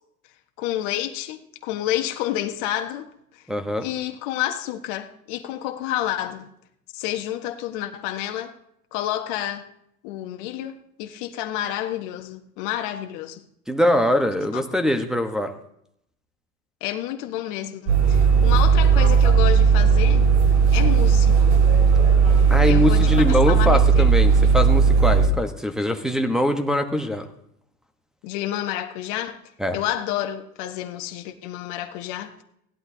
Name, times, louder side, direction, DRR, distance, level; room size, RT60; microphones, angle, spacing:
voice 1, 0.6-3.1 3.8-6.5 6.9-8.5 8.9-9.7 10.0-13.4 14.5-14.6 16.8-20.2 20.7-21.4 22.6-24.1 28.2-29.4 29.7-32.3, left 12 dB, 45° left, 6 dB, 1.3 m, -29 dB
voice 2, 3.5-3.9 13.7-15.5 22.5-27.3 29.6-29.8, left 1 dB, ahead, 3 dB, 1.1 m, -22 dB
sound 1, 17.9-25.3, right 5 dB, 45° right, 3.6 m, -16 dB
17.5 x 11.5 x 2.8 m, 0.73 s
hypercardioid pair, 95°, 46 cm